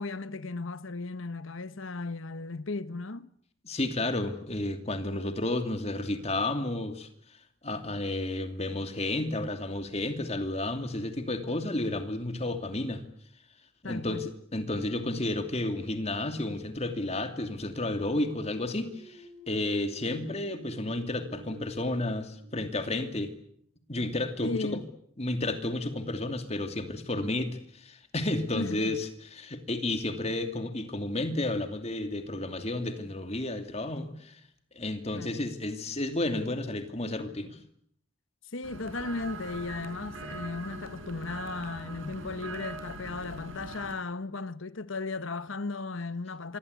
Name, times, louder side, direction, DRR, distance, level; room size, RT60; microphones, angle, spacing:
voice 1, 0.0-3.3 13.8-14.3 24.4-24.9 28.5-29.0 35.1-35.3 38.5-46.6, left 3 dB, 75° left, 1.2 m, -36 dB
voice 2, 3.6-7.1 7.6-13.0 13.8-23.3 23.9-24.8 25.2-34.4 34.7-37.6, left 2 dB, 30° left, 2.8 m, -32 dB
sound 1, 18.8-23.5, right 3 dB, 5° left, 6.1 m, -51 dB
sound 2, 38.6-43.9, right 2 dB, 80° right, 4.8 m, -42 dB
26.5 x 25.0 x 8.3 m
head